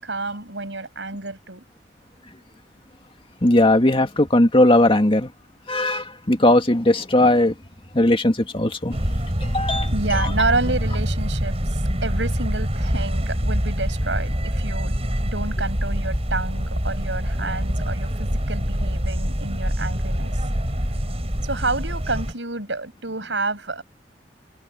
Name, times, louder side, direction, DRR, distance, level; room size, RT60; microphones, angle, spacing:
voice 1, 0.0-1.6 9.9-20.4 21.4-23.8, right 3 dB, 80° right, 6.8 m, -29 dB
voice 2, 3.4-5.3 5.7-7.5 7.9-9.0 9.4-10.3, left 1 dB, 30° left, 2.3 m, -18 dB
sound 1, 8.9-22.3, equal, 35° right, 6.6 m, -25 dB
head